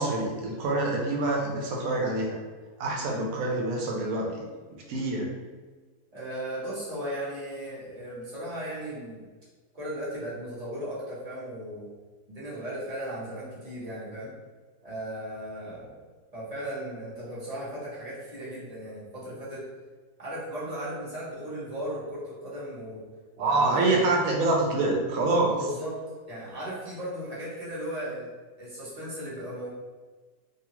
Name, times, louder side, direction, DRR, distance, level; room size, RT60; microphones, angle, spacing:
voice 1, 0.0-2.3 2.8-4.3 4.9-5.3 23.4-25.5, right 2 dB, 65° right, -1 dB, 1.0 m, -26 dB
voice 2, 6.1-9.2 9.7-11.9 12.3-14.3 14.8-16.0 16.3-19.6 20.2-23.0 23.4-24.1 25.5-26.0 26.3-28.3 28.6-29.7, right 1 dB, 30° right, -8 dB, 0.9 m, -36 dB
2.7 x 2.3 x 2.9 m, 1.4 s
omnidirectional pair, 1.7 m